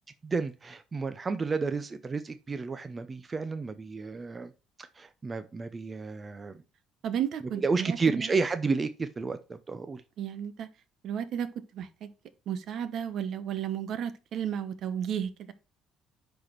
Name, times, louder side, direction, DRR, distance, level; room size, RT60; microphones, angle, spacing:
voice 1, 0.2-4.5 4.8-6.6 7.6-10.0, right 4 dB, 25° right, 0.6 m, -31 dB
voice 2, 7.0-8.3 10.2-10.7 11.0-12.1 12.5-15.5, right 9 dB, 55° right, 0.9 m, -33 dB
10.0 x 4.2 x 4.5 m
cardioid pair, 125°, 0 cm